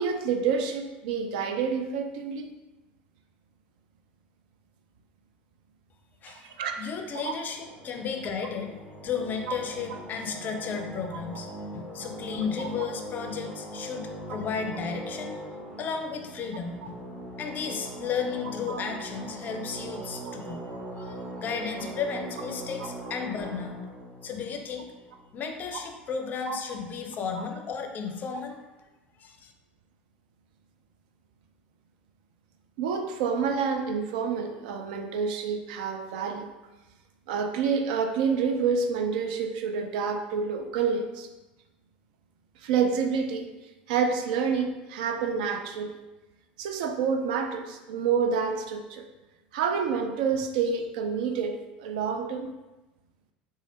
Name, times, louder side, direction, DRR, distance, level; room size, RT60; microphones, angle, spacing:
voice 1, 0.0-2.5 6.3-6.8 7.1-7.3 12.6-12.7 16.8-16.9 18.7-18.8 20.3-20.4 22.8-22.9 26.5-26.6 27.4-27.5 32.8-36.5 37.3-41.3 42.6-43.5 43.9-45.9 46.6-49.1 49.5-52.5, right 6 dB, 60° right, 5 dB, 0.4 m, -28 dB
voice 2, 6.8-8.8 9.0-15.4 15.8-17.0 17.4-23.8 24.2-24.9 25.3-28.6 29.2-29.5, left 6 dB, 35° left, 5 dB, 0.5 m, -34 dB
sound 1, 7.5-25.6, right 1 dB, 25° right, 1.4 m, -41 dB
4.1 x 2.4 x 2.8 m, 1.1 s
figure-of-eight pair, 75°, 5 cm